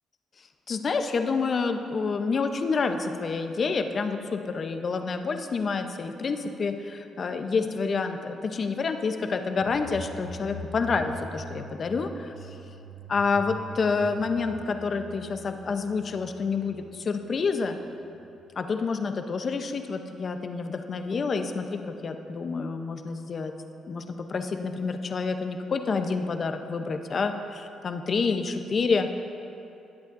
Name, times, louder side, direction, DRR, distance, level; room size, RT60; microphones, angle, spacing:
voice 1, 0.7-12.3 13.1-17.8 18.6-23.5 23.9-29.2, left 4 dB, 45° left, 6 dB, 0.7 m, -28 dB
sound 1, 9.6-18.4, equal, 30° right, 2.5 m, -44 dB
20.5 x 8.1 x 2.6 m, 2.8 s
cardioid pair, 90°, 0 cm